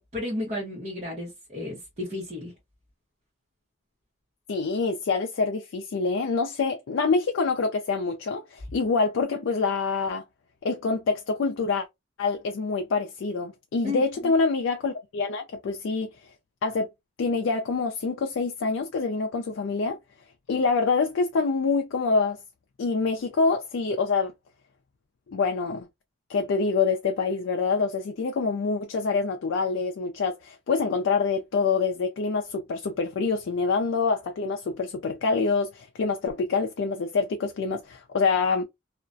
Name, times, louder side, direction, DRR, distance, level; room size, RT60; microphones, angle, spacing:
voice 1, 0.0-2.5 13.8-14.3, left 2 dB, 30° right, 0.8 m, -33 dB
voice 2, 4.5-10.2 10.6-11.8 12.2-16.1 16.6-16.9 17.2-20.0 20.5-22.4 22.8-24.3 25.3-25.9 26.3-38.6, left 4 dB, 65° left, 0.4 m, -26 dB
2.4 x 2.1 x 2.5 m
head